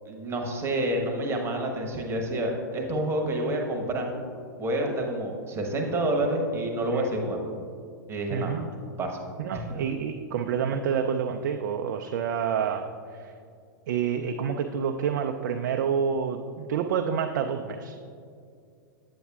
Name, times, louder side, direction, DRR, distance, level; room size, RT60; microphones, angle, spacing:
voice 1, 0.1-4.1 4.6-7.5 8.1-8.6 9.0-9.2 9.7-9.8, right 1 dB, 25° right, 2 dB, 1.0 m, -28 dB
voice 2, 8.3-8.7 9.4-13.3 13.9-18.0, right 7 dB, 60° right, 4 dB, 0.4 m, -28 dB
8.4 x 8.1 x 2.3 m, 2.3 s
hypercardioid pair, 105°, 11 cm